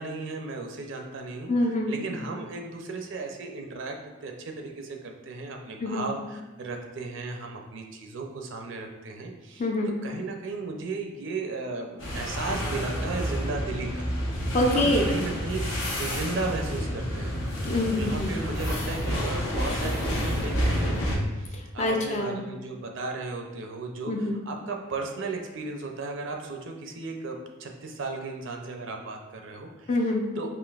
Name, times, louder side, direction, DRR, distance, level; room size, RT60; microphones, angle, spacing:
voice 1, 0.0-1.5 1.9-4.0 4.2-9.7 10.0-17.3 17.9-29.9 30.4-30.5, right 3 dB, 65° right, 3 dB, 0.5 m, -35 dB
voice 2, 1.5-2.0 5.8-6.1 9.6-9.9 14.5-15.1 17.6-18.4 21.5-22.4 24.1-24.4 29.9-30.3, left 1 dB, 35° left, 1 dB, 0.4 m, -25 dB
sound 1, 12.0-21.2, equal, 80° left, 1.0 m, -29 dB
5.0 x 2.9 x 2.4 m, 1.2 s
head